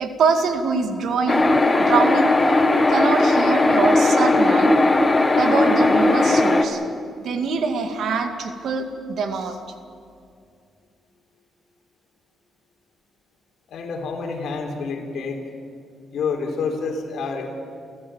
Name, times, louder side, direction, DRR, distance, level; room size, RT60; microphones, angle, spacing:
voice 1, 0.0-2.4 2.9-4.7 5.4-6.8 7.2-9.6, right 5 dB, 70° right, 6 dB, 2.3 m, -24 dB
sound 1, 1.3-6.7, left 2 dB, 20° left, 1.9 m, -17 dB
voice 2, 13.7-15.4 16.1-17.5, left 4 dB, 75° left, 3 dB, 3.7 m, -28 dB
29.5 x 15.5 x 7.4 m, 2.3 s
cardioid pair, 105°, 0 cm